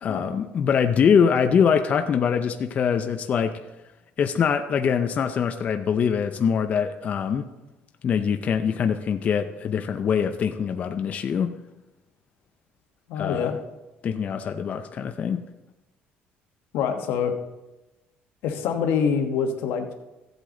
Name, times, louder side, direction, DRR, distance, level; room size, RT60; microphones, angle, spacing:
voice 1, 0.0-3.6 4.2-7.5 8.0-11.6 13.2-13.6 14.0-15.4, left 7 dB, 40° left, 6 dB, 0.5 m, -23 dB
voice 2, 13.1-13.6 16.7-17.3 18.4-19.9, left 7 dB, 85° left, 5 dB, 1.3 m, -25 dB
15.0 x 8.1 x 3.8 m, 1.0 s
cardioid pair, 145°, 4 cm